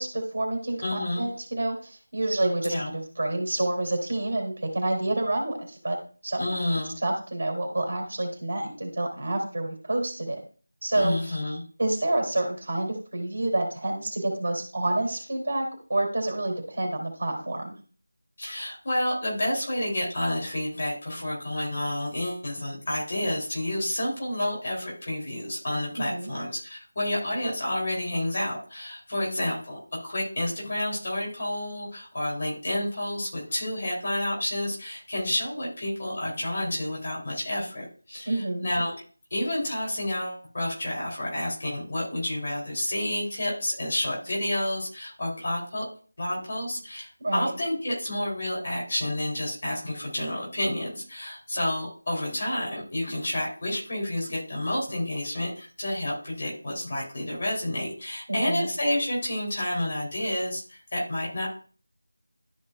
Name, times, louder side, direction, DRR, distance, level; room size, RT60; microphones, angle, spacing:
voice 1, 0.0-6.0 6.2-6.4 7.0-10.4 10.8-11.4 11.8-17.7 25.9-26.3 38.3-38.7 47.2-47.5 58.3-58.7, right 1 dB, 50° right, 2 dB, 3.2 m, -28 dB
voice 2, 0.8-1.2 2.6-2.9 6.4-6.9 10.9-11.6 18.4-38.9 39.3-45.9 46.2-61.5, left 1 dB, 35° left, -3 dB, 3.4 m, -30 dB
12.5 x 5.4 x 2.5 m, 0.41 s
figure-of-eight pair, 165°, 0 cm